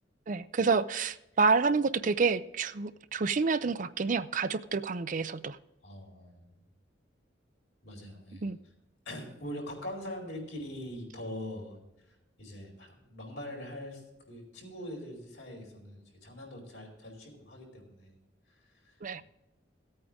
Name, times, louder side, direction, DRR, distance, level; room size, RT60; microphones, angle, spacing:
voice 1, 0.3-5.6 8.4-8.6 19.0-19.2, right 4 dB, 45° right, 13 dB, 0.5 m, -28 dB
voice 2, 5.8-6.6 7.8-8.7 9.0-18.2 18.5-19.2, left 1 dB, 70° left, 0 dB, 4.5 m, -43 dB
16.5 x 8.7 x 3.6 m, 0.93 s
head